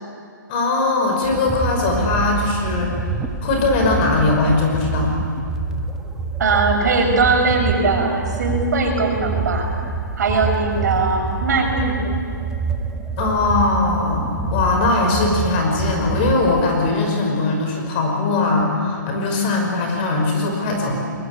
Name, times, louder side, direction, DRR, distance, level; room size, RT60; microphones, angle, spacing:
voice 1, 0.5-2.9 3.4-5.1 13.2-21.0, left 3 dB, 30° left, 2 dB, 5.6 m, -20 dB
sound 1, 1.2-16.9, right 3 dB, 5° right, 1.2 m, -26 dB
voice 2, 6.4-9.7 10.2-12.0, right 3 dB, 60° right, 2 dB, 6.7 m, -20 dB
23.0 x 22.5 x 9.8 m, 2.5 s
hypercardioid pair, 160°, 11 cm